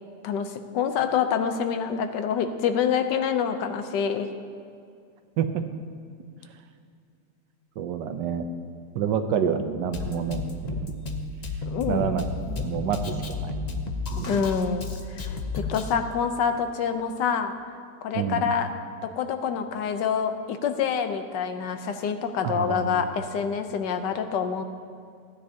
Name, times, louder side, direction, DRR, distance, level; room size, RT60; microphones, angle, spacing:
voice 1, 0.2-4.3 11.7-12.2 14.3-17.5 18.0-18.7 19.0-24.6, left 7 dB, 85° left, 8 dB, 1.3 m, -27 dB
voice 2, 7.8-8.4 8.9-10.9 11.9-13.8 14.1-14.4 18.1-18.5 22.4-23.1, right 7 dB, 85° right, 8 dB, 1.3 m, -28 dB
Drum kit, 9.9-15.9, left 3 dB, 65° left, 0.4 m, -32 dB
15.5 x 9.7 x 2.8 m, 2.3 s
omnidirectional pair, 1.9 m